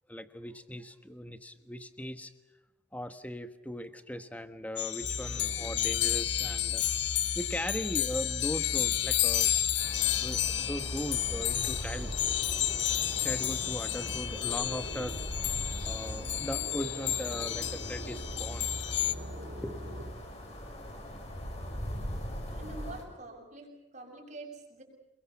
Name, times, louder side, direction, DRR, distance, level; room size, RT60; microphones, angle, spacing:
voice 1, 0.1-2.3 2.9-6.8 7.3-9.6 10.0-12.1 12.7-12.8 13.1-15.2 15.8-18.7 19.6-19.8, equal, 10° left, 9 dB, 1.4 m, -39 dB
sound 1, 4.8-19.1, left 12 dB, 70° left, 1.4 m, -31 dB
sound 2, 5.0-20.1, equal, 70° right, 5.7 m, -41 dB
sound 3, 9.8-23.0, equal, 35° left, 6.3 m, -42 dB
voice 2, 22.5-24.8, right 2 dB, 40° right, 1 dB, 7.5 m, -46 dB
28.5 x 23.0 x 7.2 m, 1.0 s
head